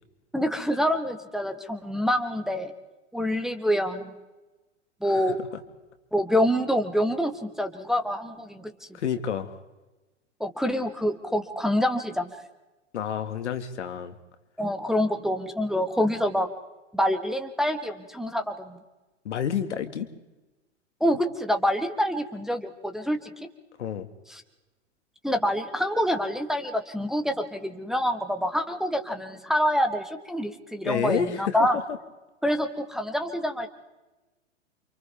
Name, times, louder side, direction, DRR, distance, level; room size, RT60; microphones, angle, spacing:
voice 1, 0.3-2.7 3.1-4.1 5.0-5.4 6.1-8.7 10.4-12.3 14.6-16.5 16.9-18.8 21.0-23.5 24.3-24.4 25.2-31.8 32.4-33.7, equal, ahead, 4 dB, 1.5 m, -26 dB
voice 2, 8.9-9.6 12.9-14.1 19.2-20.1 23.8-24.1 30.8-31.8, left 8 dB, 65° left, 8 dB, 2.1 m, -29 dB
29.5 x 27.0 x 3.5 m, 1.1 s
figure-of-eight pair, 105°, 37 cm